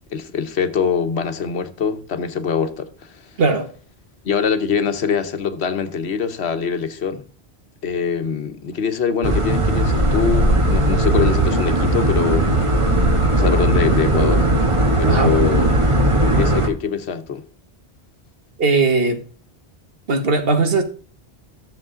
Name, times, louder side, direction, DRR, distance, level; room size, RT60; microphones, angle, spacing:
voice 1, 0.1-3.2 4.2-7.2 7.8-12.5 13.3-14.5 15.0-15.7 16.2-17.4, left 6 dB, 85° left, 1.3 m, -23 dB
voice 2, 3.4-3.7 15.1-15.4 18.6-19.3 20.1-20.8, right 3 dB, 65° right, 1.5 m, -18 dB
sound 1, 9.2-16.7, right 1 dB, 30° right, 1.2 m, -17 dB
13.5 x 7.1 x 3.8 m
omnidirectional pair, 1.1 m